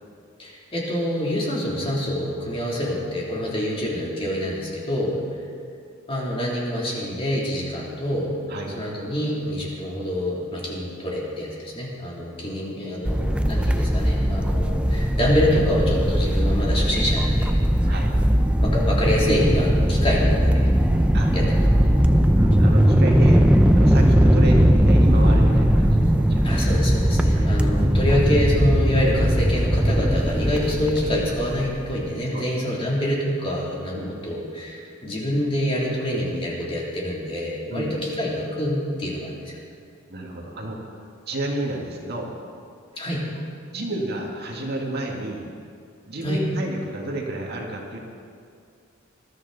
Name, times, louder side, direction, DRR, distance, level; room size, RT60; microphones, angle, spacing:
voice 1, 0.4-5.4 6.1-8.4 8.7-17.6 18.6-20.6 21.3-21.9 26.4-39.6 42.9-43.2 46.2-46.5, left 1 dB, 25° left, -4 dB, 3.2 m, -26 dB
sound 1, 13.0-32.0, equal, 5° right, 0.6 m, -19 dB
voice 2, 21.6-21.9 22.3-23.4 23.8-26.4 27.3-27.5 32.3-32.4 33.9-34.1 37.7-38.0 40.1-41.0 41.3-42.3 43.7-45.4 46.1-48.0, right 1 dB, 50° right, -1 dB, 2.0 m, -31 dB
20.5 x 13.0 x 4.1 m, 2.3 s
head